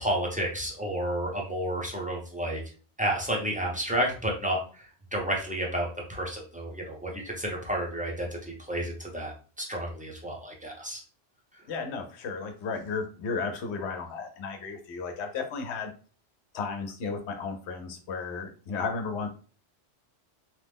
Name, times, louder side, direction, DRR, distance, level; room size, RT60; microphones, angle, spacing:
voice 1, 0.0-2.6 3.0-4.6 5.1-11.0, right 1 dB, 10° right, -2 dB, 0.5 m, -31 dB
voice 2, 11.7-15.9 16.5-19.3, left 4 dB, 90° left, 6 dB, 0.9 m, -34 dB
3.0 x 2.1 x 3.4 m, 0.38 s
omnidirectional pair, 1.1 m